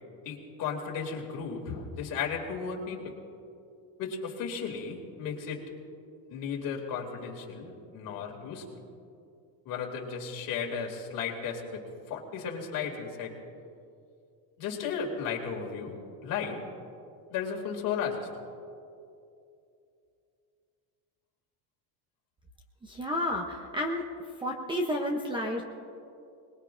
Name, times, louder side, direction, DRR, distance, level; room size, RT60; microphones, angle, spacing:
voice 1, 0.2-3.1 4.0-5.6 6.3-8.6 9.6-13.3 14.6-15.9 16.2-16.6 17.3-18.3, left 6 dB, 50° left, 0 dB, 2.6 m, -34 dB
voice 2, 22.8-24.0 24.4-25.6, left 1 dB, 10° right, 2 dB, 0.6 m, -31 dB
25.5 x 20.5 x 2.5 m, 2.6 s
cardioid pair, 170°, 43 cm